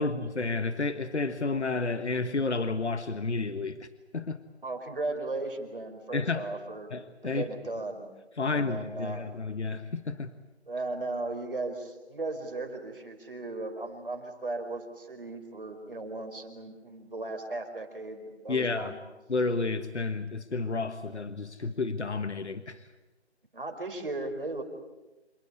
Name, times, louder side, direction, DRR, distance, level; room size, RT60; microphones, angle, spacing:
voice 1, 0.0-3.9 4.1-4.4 6.1-6.5 6.9-7.5 8.4-10.3 18.5-19.0 19.3-22.8, left 3 dB, 80° left, 11 dB, 1.5 m, -31 dB
voice 2, 4.6-6.9 7.2-8.1 8.4-9.3 10.7-19.0 23.5-24.6, right 2 dB, 50° right, 6 dB, 4.7 m, -36 dB
27.5 x 18.5 x 9.6 m, 1.0 s
figure-of-eight pair, 180°, 34 cm